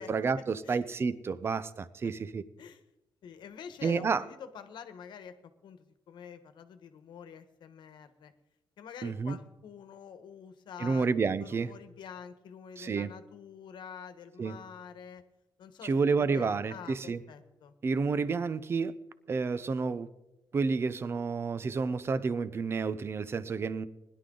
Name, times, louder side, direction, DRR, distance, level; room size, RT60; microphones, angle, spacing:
voice 1, 0.0-2.4 3.8-4.2 9.0-9.4 10.8-11.7 12.8-13.1 14.4-14.6 15.8-17.2 17.8-18.9 19.3-20.1 20.5-23.9, right 4 dB, 30° right, 16 dB, 0.6 m, -30 dB
voice 2, 3.2-5.3 5.6-8.3 8.8-11.1 11.4-15.2 15.6-15.9 16.2-17.7, left 7 dB, 70° left, 10 dB, 1.2 m, -47 dB
20.5 x 11.0 x 3.9 m, 0.94 s
wide cardioid pair, 170°, 8 cm